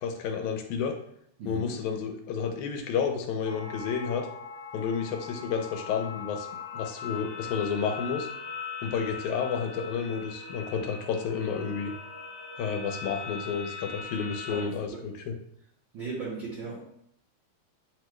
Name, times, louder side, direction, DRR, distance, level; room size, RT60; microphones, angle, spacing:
voice 1, 0.0-1.0 1.5-4.3 4.7-6.5 6.7-8.3 8.8-11.9 12.6-15.3, left 6 dB, 90° left, 4 dB, 2.0 m, -31 dB
sound 1, 3.4-14.6, left 5 dB, 70° left, 1.2 m, -40 dB
voice 2, 14.5-15.0 15.9-16.8, right 4 dB, 80° right, -5 dB, 1.1 m, -37 dB
7.6 x 3.1 x 2.2 m, 0.69 s
omnidirectional pair, 3.4 m